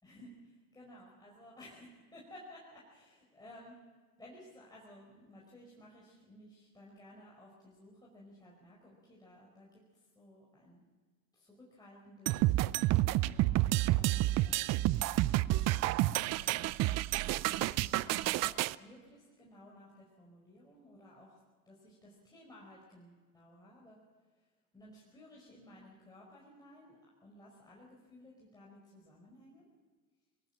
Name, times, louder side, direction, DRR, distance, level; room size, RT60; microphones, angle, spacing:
voice 1, 0.0-3.8 4.2-10.8 11.3-12.5 13.0-13.5 13.9-16.9 17.5-21.4 21.6-24.0 24.7-29.7, left 1 dB, 10° left, -5 dB, 5.1 m, -56 dB
sound 1, 12.3-18.7, right 17 dB, 35° right, 0.5 m, -29 dB
21.5 x 18.0 x 7.4 m, 1.4 s
hypercardioid pair, 85°, 44 cm